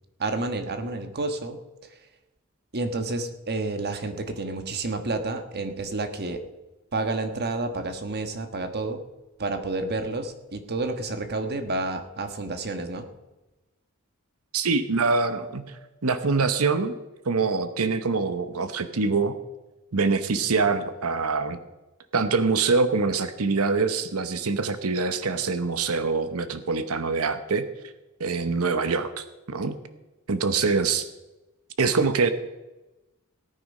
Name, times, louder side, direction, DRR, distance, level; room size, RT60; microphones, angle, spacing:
voice 1, 0.2-1.6 1.9-2.0 2.7-6.4 6.9-9.0 9.4-13.1, right 2 dB, 50° right, 7 dB, 1.3 m, -30 dB
voice 2, 14.5-16.9 17.3-19.4 19.9-21.6 22.1-27.7 28.2-29.8 30.3-31.1 31.8-32.3, right 4 dB, 75° right, 10 dB, 0.9 m, -24 dB
18.0 x 9.2 x 5.4 m, 1.1 s
head